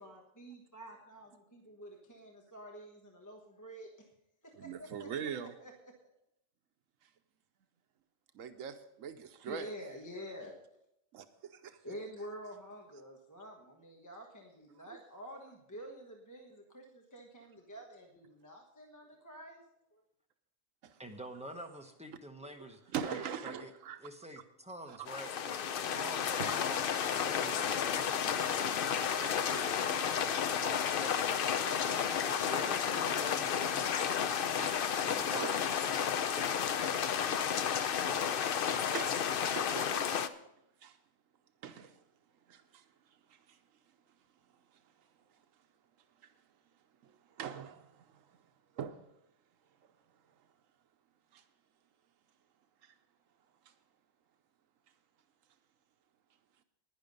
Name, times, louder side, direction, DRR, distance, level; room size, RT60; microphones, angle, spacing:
voice 1, 0.0-3.9 4.4-5.7 9.5-10.6 11.8-19.6 19.9-20.0, equal, 15° left, 1.2 m, -48 dB
voice 2, 4.5-5.5 7.0-7.1 8.3-9.7 11.1-11.8 14.8-14.9 20.8-21.0 22.4-22.5 22.9-24.0 24.9-25.1 26.4-26.5 30.0-30.6 31.8-32.2 34.6-35.0 35.3-35.5 37.9-40.5 40.8-41.0 41.6-42.0 42.5-43.7 44.1-44.2 44.4-45.7 46.2-46.4 46.7-49.1 49.8-50.5 51.3-51.4 52.8-52.9 53.6-53.7, right 8 dB, 85° right, 1.1 m, -45 dB
voice 3, 21.0-23.7 24.0-25.7 25.9-26.8 27.1-29.8 30.6-31.3 31.8-34.3 35.0-35.8, right 1 dB, 5° right, 0.9 m, -48 dB
sound 1, 25.1-40.3, left 8 dB, 55° left, 0.7 m, -32 dB
11.0 x 10.5 x 5.3 m
omnidirectional pair, 1.3 m